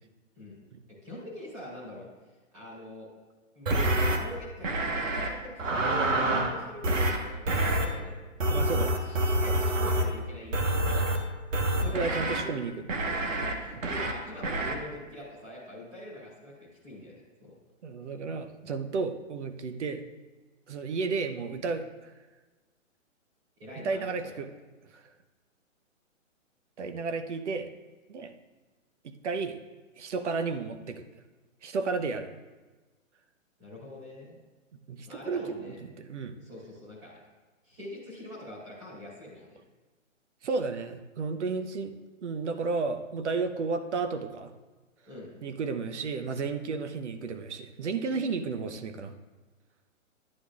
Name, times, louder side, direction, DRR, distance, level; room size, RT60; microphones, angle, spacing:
voice 1, 0.9-2.1 2.5-3.1 3.5-8.2 8.4-11.0 11.8-12.5 13.0-17.5 23.6-24.4 33.6-34.4 35.1-35.8 36.4-37.1 37.6-39.6 45.1-45.3, left 1 dB, 25° right, -7 dB, 2.4 m, -44 dB
sound 1, 3.7-4.2 4.6-5.3 5.6-6.5 6.8-7.2 7.5-7.8 8.4-10.1 10.5-11.2 11.5-12.4 12.9-13.5 13.8-14.1 14.4-14.7, right 1 dB, 80° right, 1.3 m, -27 dB
voice 2, 8.5-9.0 11.8-12.8 17.8-20.0 20.7-22.1 23.8-24.5 24.9-25.0 26.8-27.7 28.1-28.3 29.0-29.6 30.0-31.0 31.6-32.3 34.9-35.6 35.8-36.4 40.4-41.9 42.2-44.5 45.4-49.1, right 4 dB, 65° right, 9 dB, 0.8 m, -32 dB
11.5 x 9.9 x 2.4 m, 1.2 s
hypercardioid pair, 175°, 38 cm